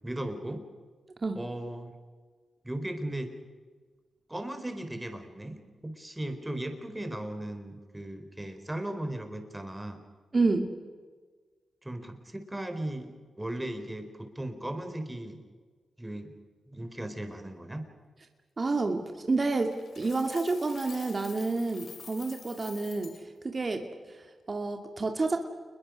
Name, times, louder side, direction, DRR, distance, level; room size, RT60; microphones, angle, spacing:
voice 1, 0.0-0.6 1.3-1.9 2.6-3.3 4.3-10.0 11.8-13.1 13.4-15.4 16.0-16.3 16.7-17.8, right 1 dB, 15° right, 6 dB, 4.6 m, -37 dB
voice 2, 10.3-10.7 18.6-25.4, right 3 dB, 40° right, 5 dB, 2.5 m, -29 dB
Coin (dropping), 19.7-23.2, left 6 dB, 65° left, 2.5 m, -48 dB
29.0 x 22.0 x 6.6 m, 1.5 s
cardioid pair, 60°, 0 cm